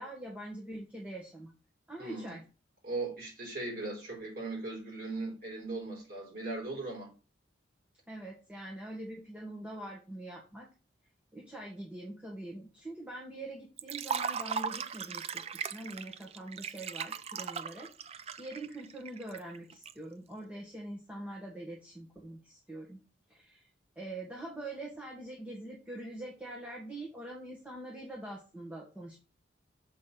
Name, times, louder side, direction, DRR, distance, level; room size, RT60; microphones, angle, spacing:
voice 1, 0.0-1.5 1.9-2.4 8.1-10.7 11.3-23.0 23.3-23.7 23.9-29.2, right 1 dB, 5° right, 1.4 m, -44 dB
voice 2, 2.0-2.4 2.8-7.1, right 3 dB, 50° right, 3.9 m, -38 dB
Liquid, 13.8-19.9, right 6 dB, 35° right, 0.3 m, -38 dB
6.9 x 4.2 x 5.7 m
head